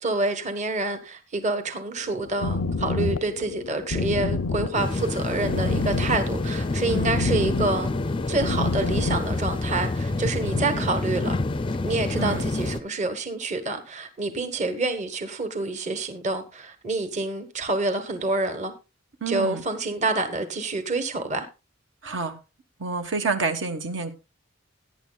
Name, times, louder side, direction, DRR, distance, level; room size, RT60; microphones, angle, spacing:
voice 1, 0.0-7.9 8.3-11.3 11.8-18.7 19.3-21.5, right 2 dB, 35° right, 1.2 m, -27 dB
sound 1, 2.0-9.3, left 3 dB, 90° left, 0.6 m, -29 dB
sound 2, 4.7-12.8, left 2 dB, 25° left, 0.4 m, -27 dB
voice 2, 10.4-11.0 12.2-12.5 19.2-19.6 22.0-22.4 22.8-24.1, right 4 dB, 65° right, 1.3 m, -29 dB
17.5 x 9.6 x 2.3 m
head